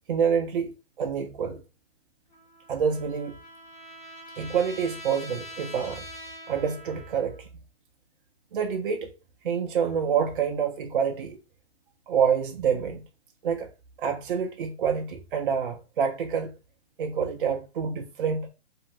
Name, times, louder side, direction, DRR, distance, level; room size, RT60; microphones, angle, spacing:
voice 1, 0.1-0.7 1.0-1.6 2.7-3.3 4.4-6.0 6.5-7.5 8.5-9.1 9.4-11.4 12.1-13.0 13.4-13.7 14.0-16.5 17.0-18.5, right 7 dB, 50° right, 0.4 m, -27 dB
Trumpet, 2.3-7.5, equal, 40° left, 1.2 m, -44 dB
2.5 x 2.4 x 2.7 m
hypercardioid pair, 155°, 34 cm